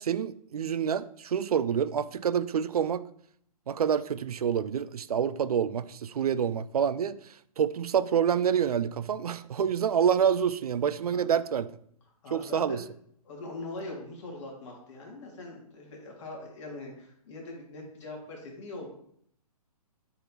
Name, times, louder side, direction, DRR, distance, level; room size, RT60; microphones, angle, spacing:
voice 1, 0.0-3.0 3.7-7.2 7.6-11.7 12.3-12.8, right 8 dB, 70° right, 0.4 m, -27 dB
voice 2, 12.2-12.8 13.2-18.9, left 2 dB, 50° left, 2.4 m, -41 dB
5.8 x 5.3 x 3.0 m
figure-of-eight pair, 130°, 20 cm